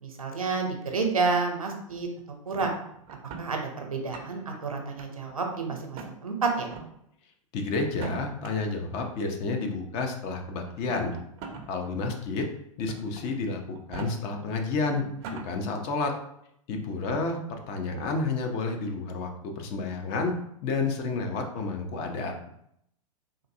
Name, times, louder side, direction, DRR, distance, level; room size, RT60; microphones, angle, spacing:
voice 1, 0.0-2.7 3.4-6.7, right 4 dB, 80° right, 3 dB, 0.7 m, -30 dB
sound 1, 2.6-3.5 3.9-4.6 5.0-5.6 5.9-6.1 6.6-6.9 7.8-8.5 9.5-9.6 10.7-11.7 12.1-12.2 12.9-13.2 13.7-14.1 14.6-14.7 15.0-15.5, right 4 dB, 35° right, 0.5 m, -40 dB
voice 2, 7.5-11.1 11.7-12.5 12.8-15.0 15.3-16.1 16.7-20.3 20.6-22.3, left 3 dB, 35° left, 4 dB, 0.6 m, -30 dB
3.8 x 2.6 x 2.6 m, 0.73 s
figure-of-eight pair, 100°, 18 cm